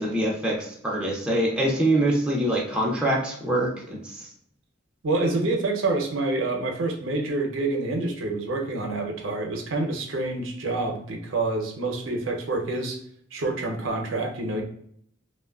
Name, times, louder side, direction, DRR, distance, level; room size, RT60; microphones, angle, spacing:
voice 1, 0.0-4.3, right 1 dB, 5° right, -3 dB, 0.4 m, -24 dB
voice 2, 5.0-13.0 13.3-14.6, right 2 dB, 85° right, 2 dB, 0.6 m, -27 dB
3.0 x 2.1 x 2.2 m, 0.67 s
head